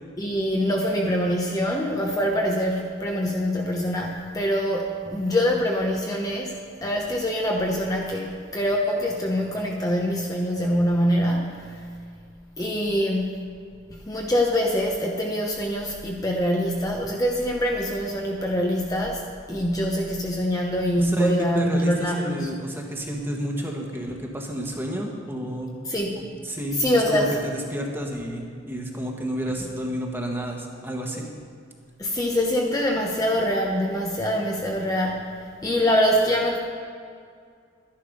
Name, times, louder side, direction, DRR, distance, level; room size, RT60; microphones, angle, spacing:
voice 1, 0.2-6.5 6.8-11.8 12.6-13.3 13.9-22.5 25.9-26.2 26.8-27.3 32.0-35.3 35.6-36.6, equal, 20° left, -1 dB, 0.9 m, -24 dB
voice 2, 21.0-25.7 26.2-31.3, equal, 10° right, 0 dB, 1.4 m, -31 dB
11.5 x 10.5 x 5.3 m, 2.2 s
head